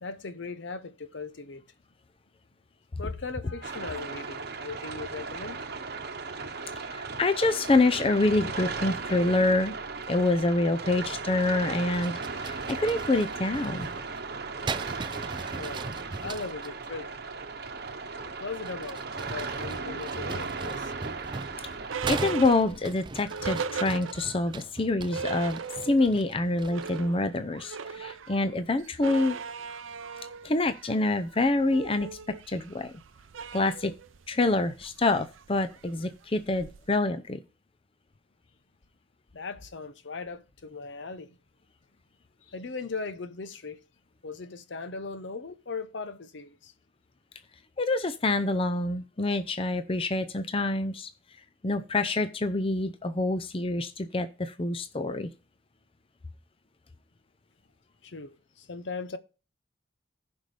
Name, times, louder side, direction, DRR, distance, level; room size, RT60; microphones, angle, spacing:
voice 1, 0.0-1.6 3.0-5.6 15.6-15.9 16.2-17.2 18.4-20.9 39.3-41.4 42.5-43.8 44.2-46.7 58.0-59.2, left 4 dB, 65° left, 0.8 m, -38 dB
sound 1, 3.6-22.0, right 4 dB, 55° right, 1.0 m, -36 dB
voice 2, 6.9-9.7 10.1-12.1 12.4-13.9 22.1-29.4 30.4-32.1 32.5-32.9 33.5-33.9 34.3-37.4 47.8-51.1 51.6-55.3, left 2 dB, 30° left, 0.6 m, -26 dB
sound 2, 11.9-16.8 18.5-27.1, right 4 dB, 25° right, 0.3 m, -40 dB
sound 3, 20.9-24.5 24.8-24.9 25.1-26.2 26.5-37.0, right 5 dB, 85° right, 0.6 m, -38 dB
15.5 x 5.3 x 3.3 m
head